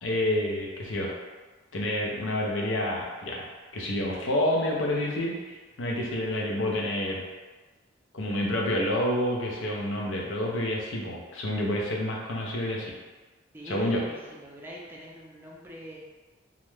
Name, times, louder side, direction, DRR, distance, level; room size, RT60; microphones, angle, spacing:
voice 1, 0.0-1.1 1.7-7.2 8.1-12.9 13.6-14.0, left 1 dB, 85° left, -2 dB, 0.6 m, -28 dB
voice 2, 13.5-16.0, equal, 10° right, -4 dB, 0.4 m, -43 dB
2.4 x 2.1 x 3.1 m, 1.3 s
head